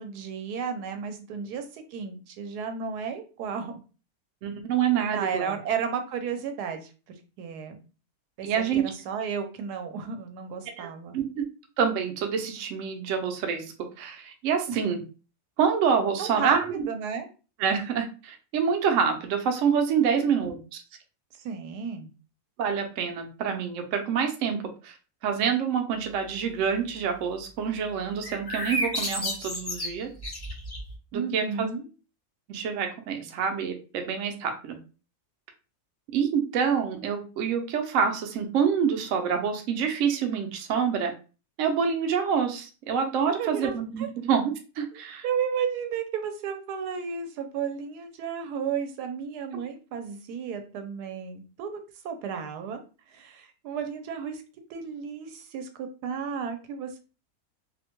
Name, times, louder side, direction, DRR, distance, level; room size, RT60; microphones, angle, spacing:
voice 1, 0.0-3.7 5.1-6.9 7.4-7.8 8.4-11.1 14.7-15.0 16.2-16.5 16.8-17.3 20.1-20.5 21.3-22.1 31.1-31.9 43.3-43.7 44.0-44.1 44.9-51.8 52.0-52.8 53.1-54.4 54.7-57.0, right 6 dB, 85° right, 7 dB, 1.1 m, -33 dB
voice 2, 4.4-5.5 8.4-8.8 10.8-11.4 11.8-15.0 15.6-16.9 17.6-20.8 22.6-25.0 25.2-30.1 31.1-31.7 32.5-34.8 36.1-41.1 41.6-45.3, right 7 dB, 70° right, 4 dB, 0.8 m, -27 dB
sound 1, 28.2-30.9, left 1 dB, 25° left, 0.5 m, -31 dB
2.7 x 2.1 x 2.8 m, 0.34 s
omnidirectional pair, 1.7 m